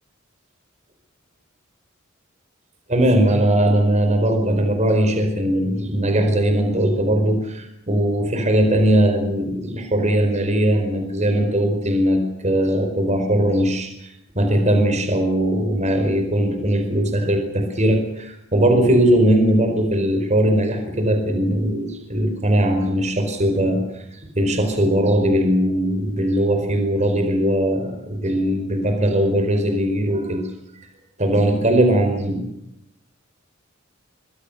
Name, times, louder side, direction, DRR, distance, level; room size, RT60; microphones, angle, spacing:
voice 1, 2.9-30.4 31.2-32.5, right 1 dB, 35° right, 6 dB, 4.8 m, -20 dB
25.5 x 23.5 x 6.7 m, 0.79 s
head